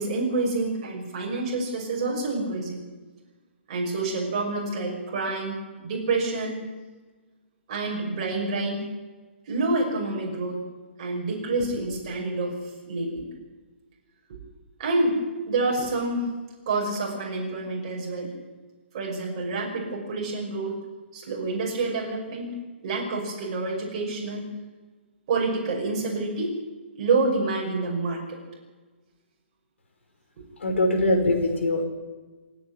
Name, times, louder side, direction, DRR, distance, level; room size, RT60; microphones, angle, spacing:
voice 1, 0.0-2.8 3.7-6.6 7.7-8.8 9.5-10.6 11.0-12.5 12.9-13.3 14.3-14.4 14.8-15.2 15.5-16.3 16.7-18.3 18.9-20.8 21.1-22.5 22.8-24.4 25.3-26.6 27.0-28.4, right 3 dB, 30° right, -1 dB, 5.9 m, -27 dB
voice 2, 30.6-31.8, left 1 dB, 85° left, 5 dB, 5.5 m, -22 dB
27.0 x 9.6 x 10.0 m, 1.3 s
hypercardioid pair, 175°, 6 cm